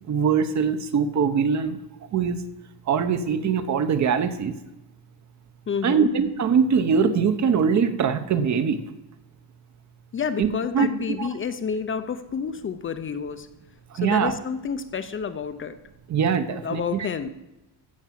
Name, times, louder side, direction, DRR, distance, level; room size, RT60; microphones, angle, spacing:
voice 1, 0.1-1.8 2.1-2.4 2.9-4.6 5.8-8.8 10.4-10.5 10.7-10.9 11.2-11.3 14.0-14.3 16.1-17.3, right 6 dB, 45° right, 10 dB, 1.0 m, -22 dB
voice 2, 5.7-6.1 10.1-13.5 13.9-15.8 16.5-17.3, left 6 dB, 30° left, 10 dB, 0.6 m, -29 dB
15.0 x 6.0 x 7.5 m, 0.98 s
cardioid pair, 145°, 41 cm